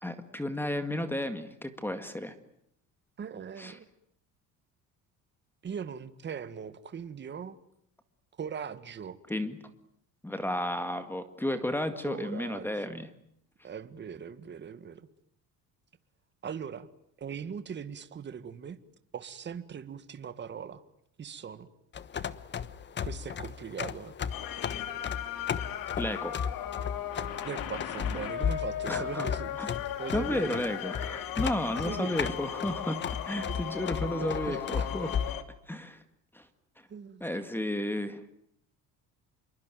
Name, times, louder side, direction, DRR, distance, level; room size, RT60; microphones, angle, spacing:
voice 1, 0.0-2.3 3.6-3.8 9.3-9.6 10.2-13.1 26.0-26.4 28.9-29.3 29.6-29.7 30.1-35.1 35.7-36.0 36.3-36.5 37.2-38.2, left 1 dB, 5° left, 10 dB, 2.0 m, -33 dB
voice 2, 3.2-3.9 5.6-7.6 8.4-9.2 12.0-13.0 13.6-15.1 16.4-16.9 17.2-18.8 19.1-20.8 21.2-21.7 23.0-24.1 27.4-30.6 31.8-32.2 34.2-34.9 36.9-37.2, right 7 dB, 30° right, 12 dB, 1.8 m, -40 dB
sound 1, 21.9-35.4, left 7 dB, 30° left, 1.2 m, -35 dB
sound 2, 24.3-35.4, left 11 dB, 65° left, 2.8 m, -37 dB
27.5 x 23.0 x 9.3 m, 0.72 s
cardioid pair, 140°, 36 cm